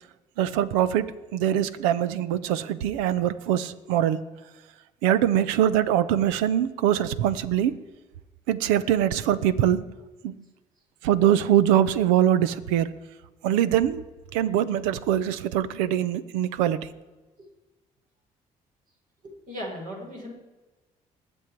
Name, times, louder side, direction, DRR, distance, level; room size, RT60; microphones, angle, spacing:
voice 1, 0.4-4.2 5.0-7.8 8.5-9.8 10.2-10.3 11.0-12.9 13.4-14.0 14.3-16.9, right 11 dB, 85° right, 17 dB, 0.6 m, -23 dB
voice 2, 19.2-20.3, equal, 55° right, -1 dB, 5.0 m, -37 dB
20.5 x 7.1 x 4.6 m, 1.2 s
hypercardioid pair, 55°, 16 cm